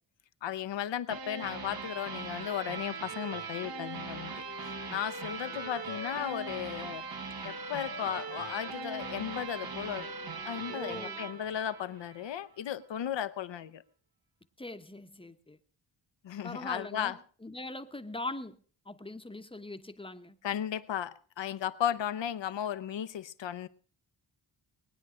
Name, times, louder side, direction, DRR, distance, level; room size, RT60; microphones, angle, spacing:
voice 1, 0.4-7.1 7.4-10.1 10.4-13.8 16.2-17.2 20.4-23.7, left 10 dB, 70° left, 15 dB, 0.9 m, -35 dB
sound 1, 1.1-12.4, right 4 dB, 50° right, 1.2 m, -40 dB
Wind instrument woodwind instrument, 3.5-11.2, left 6 dB, 35° left, 0.6 m, -49 dB
voice 2, 10.7-11.2 14.6-15.6 16.4-17.2 17.4-18.6 18.9-20.3, left 2 dB, 10° left, 9 dB, 0.9 m, -41 dB
21.0 x 9.8 x 4.9 m, 0.44 s
wide cardioid pair, 100°, 46 cm